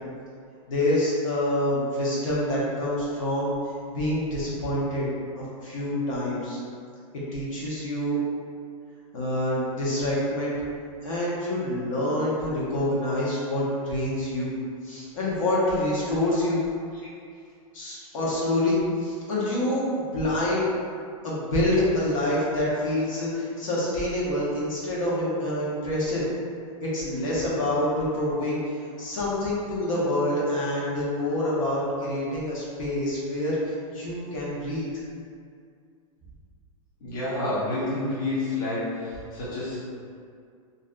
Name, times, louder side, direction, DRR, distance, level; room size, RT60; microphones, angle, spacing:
voice 1, 0.7-3.5 3.9-5.1 5.4-6.6 7.1-8.2 9.1-10.5 11.0-14.5 14.8-16.6 17.7-20.7 21.2-26.2 26.8-34.8, left 1 dB, 65° left, -7 dB, 0.8 m, -26 dB
voice 2, 37.0-39.8, left 2 dB, 30° left, -10 dB, 0.6 m, -29 dB
2.5 x 2.1 x 2.4 m, 2.3 s
supercardioid pair, 175°, 18 cm